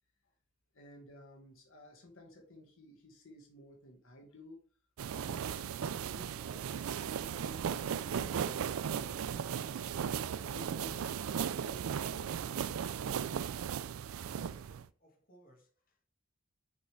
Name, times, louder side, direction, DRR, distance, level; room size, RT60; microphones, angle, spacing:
voice 1, 0.7-4.6 5.1-11.3 11.6-13.0, equal, 70° left, 1.6 m, -55 dB
sound 1, 5.0-14.9, right 8 dB, 85° right, 0.4 m, -36 dB
voice 2, 14.2-16.1, right 2 dB, 40° left, 1.9 m, -62 dB
6.2 x 5.6 x 3.3 m
head